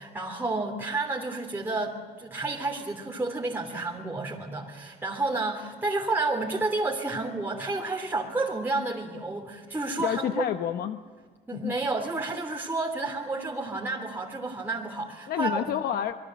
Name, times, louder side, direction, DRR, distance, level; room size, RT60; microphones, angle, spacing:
voice 1, 0.0-10.4 11.5-15.7, right 3 dB, 10° right, -1 dB, 3.1 m, -30 dB
voice 2, 10.0-11.0 11.5-11.7 15.3-16.2, left 10 dB, 65° left, 8 dB, 1.1 m, -29 dB
27.5 x 21.5 x 7.6 m, 1.5 s
cardioid pair, 110°, 17 cm